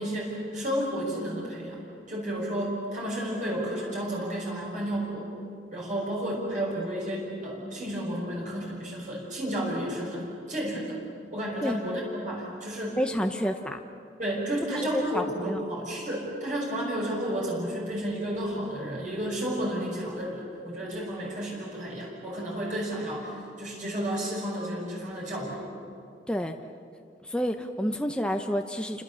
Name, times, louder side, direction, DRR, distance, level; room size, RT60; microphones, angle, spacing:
voice 1, 0.0-1.8 2.1-5.2 5.7-11.0 11.3-13.0 13.5-13.6 14.2-25.6, equal, 45° right, -3 dB, 5.9 m, -32 dB
voice 2, 13.0-13.8 14.7-15.6 26.3-26.6 27.2-29.0, equal, 5° left, 4 dB, 0.8 m, -29 dB
29.5 x 26.0 x 7.0 m, 2.5 s
head